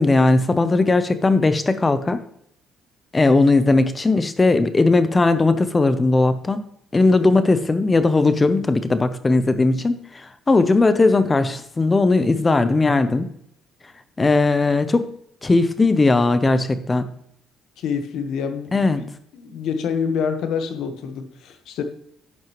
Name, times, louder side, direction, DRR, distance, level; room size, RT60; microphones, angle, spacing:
voice 1, 0.0-2.2 3.1-6.6 6.9-13.3 14.2-15.1 15.4-17.1 18.7-19.0, left 3 dB, 15° left, 0.6 m, -18 dB
voice 2, 17.8-19.1 19.3-21.8, left 6 dB, 60° left, 1.1 m, -27 dB
10.5 x 7.7 x 3.0 m
cardioid pair, 175°, 0 cm